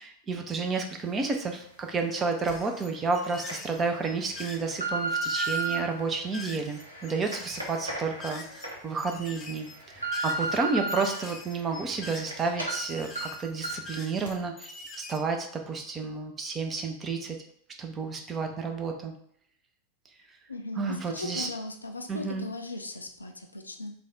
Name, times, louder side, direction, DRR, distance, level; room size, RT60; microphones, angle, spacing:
voice 1, 0.0-9.7 9.9-14.7 15.0-17.4 17.8-19.1 20.8-21.5 22.1-22.5, right 4 dB, 20° right, 4 dB, 0.5 m, -31 dB
sound 1, 2.4-8.7 9.0-15.2, left 3 dB, 25° left, 0.5 m, -44 dB
sound 2, 2.5-2.6 3.2-3.5 4.2-5.8 6.4-8.7 9.2-9.3 9.7-11.0 11.4-12.3 12.6-12.8 13.2-13.3 13.6-13.9 14.3-14.4, right 3 dB, 80° right, 0.8 m, -33 dB
voice 2, 20.5-23.9, left 3 dB, 80° left, 5 dB, 0.4 m, -38 dB
3.3 x 2.3 x 3.9 m, 0.66 s
figure-of-eight pair, 90°, 0 cm